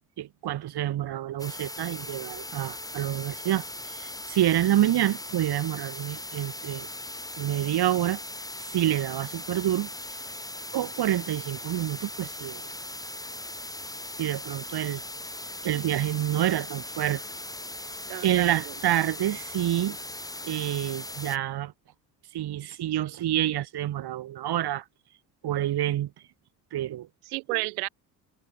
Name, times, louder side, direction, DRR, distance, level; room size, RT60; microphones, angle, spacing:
voice 1, 0.0-6.9 7.4-8.2 8.7-9.9 10.7-12.6 14.2-15.0 15.6-17.2 18.2-20.0 20.4-21.7 22.3-24.8 25.4-26.1 26.7-27.1, right 12 dB, 60° right, 6.7 m, -27 dB
sound 1, 1.4-21.4, left 1 dB, 10° left, 4.7 m, -39 dB
voice 2, 18.1-18.7 19.0-19.1 27.3-27.9, right 35 dB, 80° right, 6.4 m, -32 dB
hypercardioid pair, 65°, 43 cm